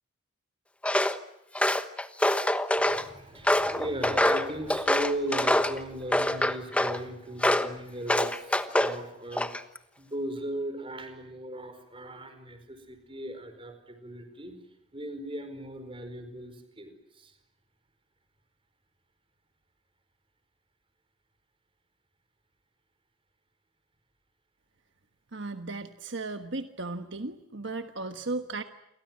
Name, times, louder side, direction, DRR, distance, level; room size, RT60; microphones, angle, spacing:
Walk footsteps, 0.8-1.2 1.5-3.0 3.5-5.8 6.1-7.0 7.4-7.7 8.1-9.0 9.3-9.8, left 1 dB, 5° left, 1.1 m, -25 dB
voice 1, 2.8-9.5 10.0-14.5 14.9-17.3, right 1 dB, 25° right, 9 dB, 4.9 m, -37 dB
voice 2, 25.3-28.6, right 3 dB, 60° right, 8 dB, 1.3 m, -35 dB
29.5 x 24.0 x 7.6 m, 0.85 s
head